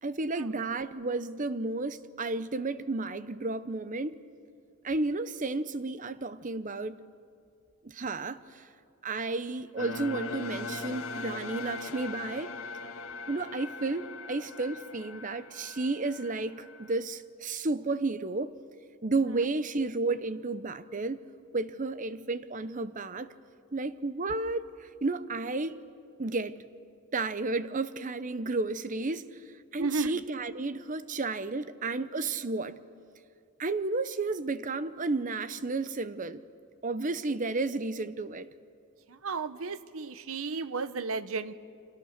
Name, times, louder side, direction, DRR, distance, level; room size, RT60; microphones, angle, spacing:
voice 1, 0.0-4.2 4.8-7.0 7.8-8.6 9.0-12.5 13.3-18.5 19.0-21.2 21.5-23.3 23.7-25.8 26.2-26.6 27.1-29.4 29.7-32.8 33.6-36.4 36.8-38.5, right 3 dB, 35° right, 0.8 m, -32 dB
sound 1, 9.8-17.0, left 3 dB, 70° left, 1.8 m, -40 dB
voice 2, 29.8-30.1 39.1-41.5, right 4 dB, 70° right, 0.9 m, -33 dB
29.5 x 24.5 x 6.6 m
head